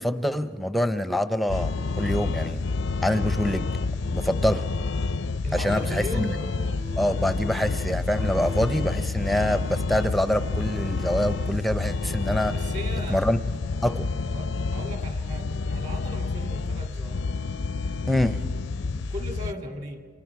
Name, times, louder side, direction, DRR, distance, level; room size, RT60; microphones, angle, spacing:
voice 1, 0.0-2.7 3.0-3.7 4.1-4.7 5.5-6.3 7.0-12.5 13.1-13.4 13.8-14.1 18.1-18.4, left 1 dB, ahead, 11 dB, 0.5 m, -25 dB
sound 1, 1.5-19.5, left 3 dB, 65° left, 0.5 m, -29 dB
voice 2, 5.4-6.4 12.5-13.3 14.3-17.3 18.9-20.0, equal, 40° right, 5 dB, 2.0 m, -37 dB
sound 2, 5.7-8.8 9.1-12.7, right 1 dB, 55° right, 1.2 m, -47 dB
29.5 x 24.5 x 4.7 m, 2.1 s
head